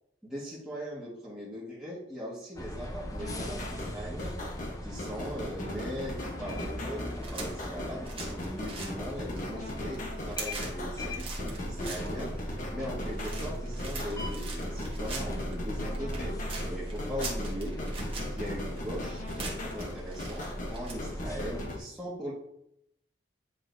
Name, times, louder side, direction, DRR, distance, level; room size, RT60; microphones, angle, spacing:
voice 1, 0.2-4.4 4.8-16.3 16.7-17.8 18.3-22.3, equal, 5° right, -9 dB, 1.5 m, -40 dB
sound 1, 2.5-21.6, equal, 20° left, 0.6 m, -39 dB
sound 2, 3.1-21.8, left 1 dB, 45° left, 0.9 m, -39 dB
sound 3, 7.1-20.9, right 3 dB, 30° right, 1.2 m, -44 dB
9.4 x 3.8 x 2.6 m, 0.78 s
head